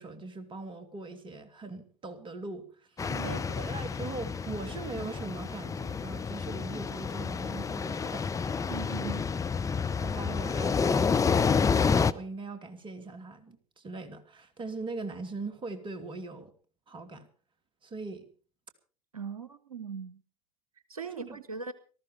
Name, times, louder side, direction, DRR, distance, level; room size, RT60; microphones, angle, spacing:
voice 1, 0.0-8.3 8.7-9.1 10.0-16.5 16.9-17.3 17.8-18.2 21.1-21.4, right 3 dB, 25° right, 9 dB, 2.7 m, -41 dB
sound 1, 3.0-12.1, left 5 dB, 20° left, 0.8 m, -29 dB
voice 2, 3.1-3.4 8.7-9.2 19.1-20.2 20.9-21.7, right 6 dB, 85° right, 15 dB, 0.8 m, -40 dB
18.5 x 14.0 x 4.9 m, 0.40 s
figure-of-eight pair, 70°, 18 cm